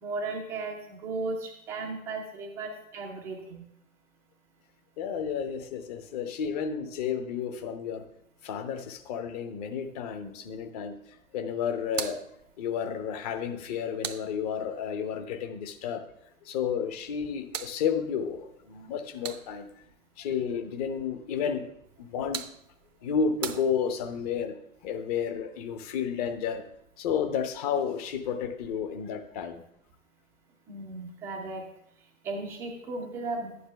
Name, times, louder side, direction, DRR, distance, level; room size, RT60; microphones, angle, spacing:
voice 1, 0.0-3.7 30.7-31.7 32.2-33.5, right 3 dB, 5° right, 1 dB, 0.4 m, -35 dB
voice 2, 5.0-8.0 8.4-10.9 11.3-12.2 12.6-16.0 16.4-19.7 20.2-21.7 22.0-22.4 23.0-24.5 24.8-26.6 27.0-29.6, left 7 dB, 30° left, 7 dB, 0.8 m, -31 dB
sound 1, 11.8-14.9 16.9-19.9 21.8-24.3, right 8 dB, 65° right, 0.8 m, -42 dB
11.5 x 9.4 x 3.3 m, 0.75 s
figure-of-eight pair, 115°, 41 cm